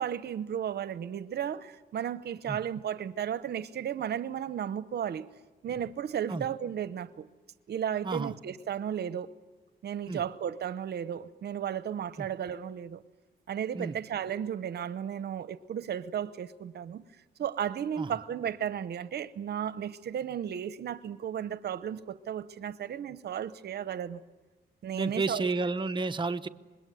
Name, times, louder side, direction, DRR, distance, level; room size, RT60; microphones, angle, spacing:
voice 1, 0.0-5.3 5.6-7.2 7.7-9.3 9.8-13.0 13.5-17.0 17.4-24.2 24.8-25.5, right 9 dB, 75° right, 0.8 m, -34 dB
voice 2, 24.9-26.5, right 3 dB, 30° right, 0.9 m, -31 dB
25.5 x 21.0 x 9.3 m
cardioid pair, 90°, 17 cm